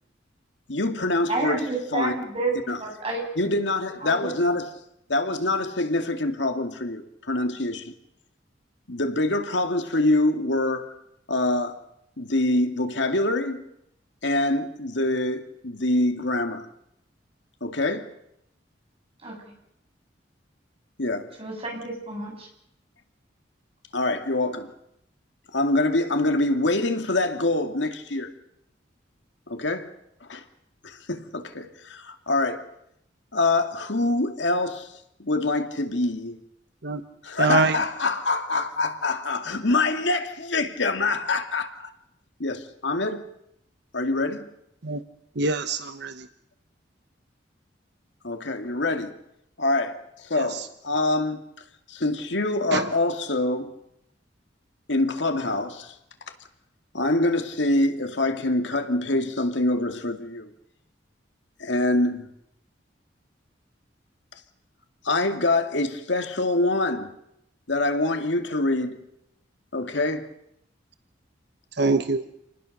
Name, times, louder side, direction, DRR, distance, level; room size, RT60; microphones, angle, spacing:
voice 1, 0.7-1.6 1.9-2.3 2.7-2.8 3.4-4.7 5.1-7.9 8.9-10.9 11.3-11.8 12.2-13.6 14.2-16.7 17.6-18.1 21.0-21.3 23.9-24.7 25.5-28.3 29.5-29.9 30.3-30.4 30.8-32.6 33.3-34.9 35.2-36.4 37.2-41.9 42.4-43.2 43.9-44.5 48.2-49.1 49.6-51.4 51.9-53.7 54.9-55.9 56.9-60.5 61.6-62.3 65.0-67.1 67.7-69.0 69.7-70.3, left 2 dB, 70° left, 2.3 m, -25 dB
voice 2, 1.3-2.5 2.8-3.2 4.0-4.3 19.2-19.3 21.4-22.5, right 3 dB, 30° right, 7.9 m, -30 dB
voice 3, 37.4-37.8 44.8-45.0 45.4-46.2 52.7-52.9 71.8-72.2, right 3 dB, 65° right, 1.1 m, -23 dB
28.0 x 19.5 x 6.6 m
head